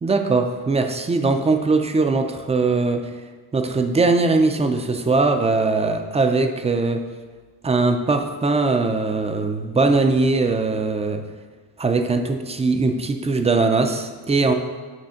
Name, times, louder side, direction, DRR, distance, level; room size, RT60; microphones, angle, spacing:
voice 1, 0.0-3.1 3.5-7.1 7.6-11.2 11.8-14.5, right 3 dB, 15° right, 6 dB, 0.3 m, -20 dB
7.7 x 3.5 x 5.7 m, 1.4 s
cardioid pair, 140°, 42 cm